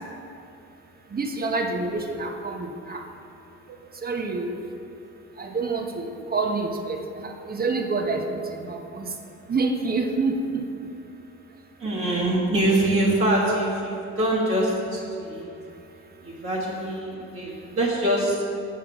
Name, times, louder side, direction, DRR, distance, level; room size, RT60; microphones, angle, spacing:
voice 1, 1.1-3.0 4.0-4.6 5.4-9.1 9.5-10.6, right 3 dB, 30° right, 4 dB, 0.9 m, -27 dB
voice 2, 11.8-15.5 16.2-18.4, right 1 dB, 45° right, -6 dB, 1.7 m, -24 dB
8.5 x 5.7 x 4.8 m, 2.7 s
cardioid pair, 90°, 30 cm